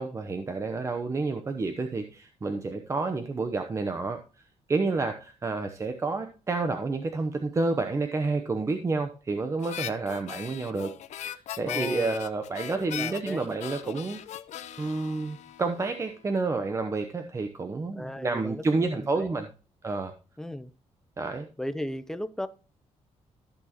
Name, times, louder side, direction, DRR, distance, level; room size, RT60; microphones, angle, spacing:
voice 1, 0.0-4.2 4.7-10.9 11.2-14.2 14.8-19.5 19.8-20.1 21.2-21.5, right 3 dB, 25° right, 0.8 m, -29 dB
Harmonica, 9.6-16.1, left 11 dB, 70° left, 0.7 m, -39 dB
voice 2, 11.6-12.2 12.9-13.6 17.9-19.4 20.4-20.7 21.6-22.5, left 1 dB, 5° left, 0.6 m, -36 dB
14.0 x 6.2 x 2.9 m
cardioid pair, 135°, 12 cm